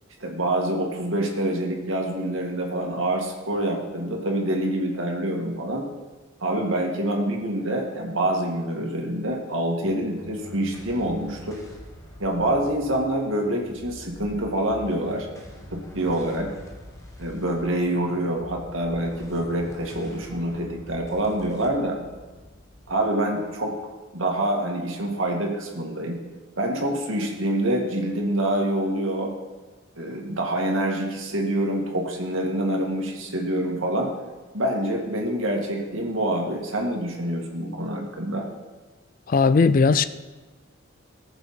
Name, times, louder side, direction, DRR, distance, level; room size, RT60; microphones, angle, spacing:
voice 1, 0.2-5.9 6.4-11.6 12.2-15.3 15.7-16.5 17.2-22.0 22.9-23.7 24.1-26.2 26.6-29.3 30.0-34.1 34.5-38.5, right 1 dB, 70° right, 0 dB, 2.1 m, -26 dB
sound 1, 9.8-24.4, left 1 dB, 15° left, 1.4 m, -45 dB
voice 2, 39.3-40.0, left 4 dB, 40° left, 14 dB, 0.3 m, -17 dB
18.5 x 7.1 x 4.4 m, 1.2 s
head